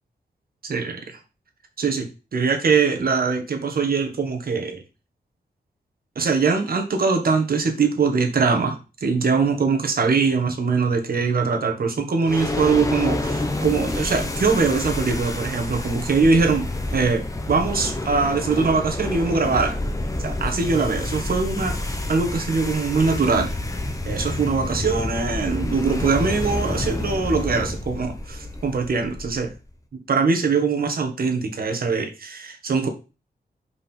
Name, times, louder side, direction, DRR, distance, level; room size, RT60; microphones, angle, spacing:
voice 1, 0.6-1.2 1.8-4.8 6.1-16.7 16.9-19.8 20.2-23.5 24.0-29.5 30.1-32.9, right 4 dB, 60° right, 4 dB, 1.6 m, -22 dB
sound 1, 12.3-29.6, left 2 dB, 20° left, 1.1 m, -28 dB
5.8 x 5.0 x 4.5 m, 0.31 s
wide cardioid pair, 115°, 17 cm